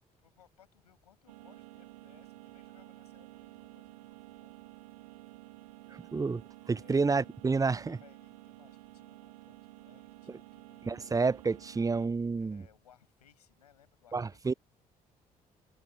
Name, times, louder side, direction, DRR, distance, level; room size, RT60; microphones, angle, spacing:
voice 1, 0.2-4.5 6.7-11.0 12.4-14.5, left 10 dB, 80° left, 6.0 m, -64 dB
sound 1, 1.3-12.1, right 20 dB, 70° right, 0.8 m, -52 dB
voice 2, 6.1-6.4 6.7-8.0 10.9-12.6 14.1-14.5, right 4 dB, 15° right, 0.6 m, -29 dB
open air
figure-of-eight pair, 45°, 20 cm